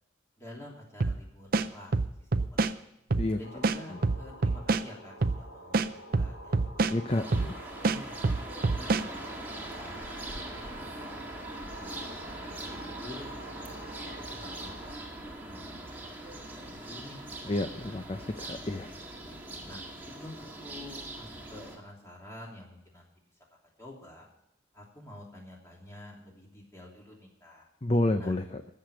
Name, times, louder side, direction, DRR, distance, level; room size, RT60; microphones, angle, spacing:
voice 1, 0.4-2.7 3.4-8.1 8.5-11.4 11.7-12.1 12.4-13.8 14.3-18.0 19.5-23.1 23.8-24.3 24.7-27.7 28.2-28.3, left 1 dB, 15° left, -2 dB, 3.0 m, -49 dB
sound 1, 1.0-1.2 1.5-2.7 3.1-3.3 3.6-4.8 5.2-5.4 5.7-7.0 7.3-7.5 7.8-9.1, right 3 dB, 45° right, 0.5 m, -26 dB
sound 2, 3.4-14.9, equal, 65° left, 4.3 m, -48 dB
voice 2, 6.9-7.6 17.5-18.9 27.8-28.7, left 1 dB, 30° left, 7 dB, 0.6 m, -30 dB
sound 3, 7.1-21.8, right 1 dB, 10° right, 1.7 m, -42 dB
14.5 x 6.7 x 8.9 m, 0.78 s
head